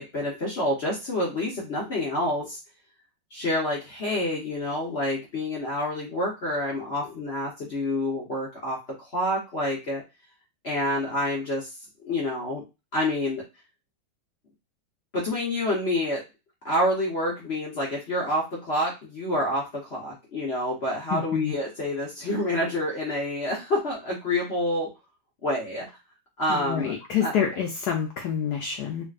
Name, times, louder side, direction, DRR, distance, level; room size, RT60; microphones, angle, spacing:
voice 1, 0.0-2.6 3.3-10.0 10.6-11.7 12.0-12.6 12.9-13.4 15.1-16.2 16.6-24.9 25.4-25.9 26.4-26.9 27.2-27.3, left 1 dB, 55° left, -3 dB, 0.7 m, -28 dB
voice 2, 21.1-21.5 26.5-29.0, left 8 dB, 70° left, 1 dB, 1.0 m, -27 dB
3.6 x 2.6 x 2.4 m, 0.26 s
omnidirectional pair, 2.2 m